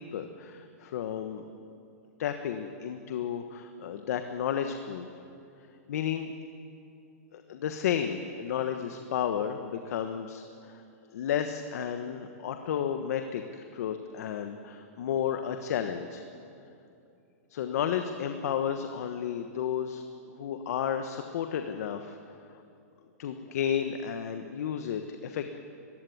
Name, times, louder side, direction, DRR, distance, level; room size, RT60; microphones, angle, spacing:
voice 1, 0.0-1.4 2.2-5.1 5.9-6.3 7.3-10.8 11.1-16.2 17.5-20.0 20.3-22.6 23.2-25.5, left 8 dB, 70° left, 7 dB, 1.3 m, -32 dB
21.0 x 15.5 x 9.4 m, 2.6 s
hypercardioid pair, 145°, 9 cm